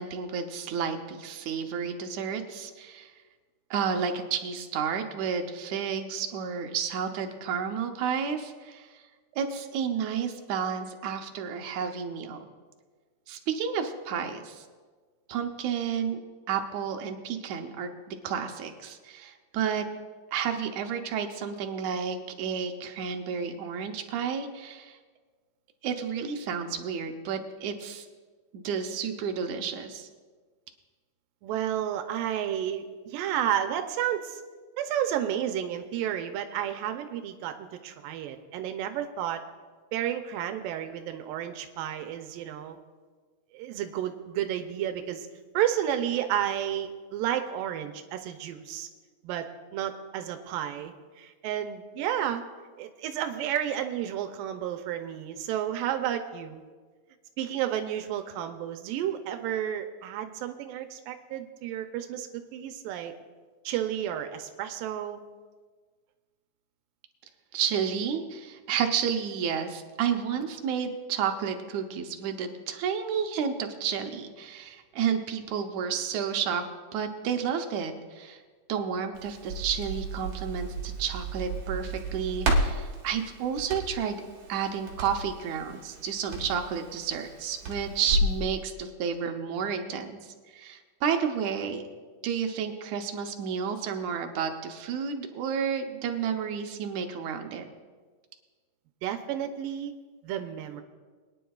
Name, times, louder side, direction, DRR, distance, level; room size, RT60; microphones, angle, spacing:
voice 1, 0.0-3.1 3.7-9.0 9.3-12.4 13.3-14.7 15.3-16.2 16.5-19.9 20.3-25.0 25.8-28.1 28.5-30.1 67.5-76.6 76.9-78.4 78.7-84.2 84.5-91.8 92.2-97.7, right 7 dB, 70° right, 5 dB, 2.0 m, -31 dB
voice 2, 31.4-34.4 34.8-39.4 39.9-42.8 43.5-45.3 45.5-48.9 49.2-49.5 49.7-52.4 52.8-56.6 57.4-63.1 63.7-65.2 99.0-99.9 100.2-100.8, right 10 dB, 90° right, 7 dB, 2.4 m, -31 dB
Crackle, 79.2-88.4, right 1 dB, 50° right, 2.1 m, -32 dB
22.5 x 10.0 x 2.4 m, 1.5 s
omnidirectional pair, 3.9 m